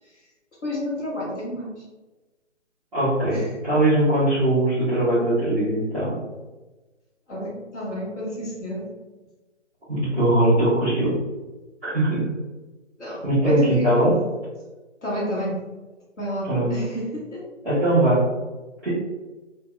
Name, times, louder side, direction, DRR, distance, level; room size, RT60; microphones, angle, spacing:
voice 1, 0.6-1.8 3.3-3.5 7.3-8.9 13.0-14.1 15.0-15.6 16.2-17.4, equal, 70° left, -5 dB, 1.4 m, -30 dB
voice 2, 2.9-6.2 9.9-11.1 11.8-12.2 13.2-14.1 16.5-16.7 17.6-18.3 18.8-18.9, right 1 dB, ahead, -13 dB, 0.8 m, -20 dB
2.8 x 2.6 x 2.4 m, 1.2 s
figure-of-eight pair, 160°, 37 cm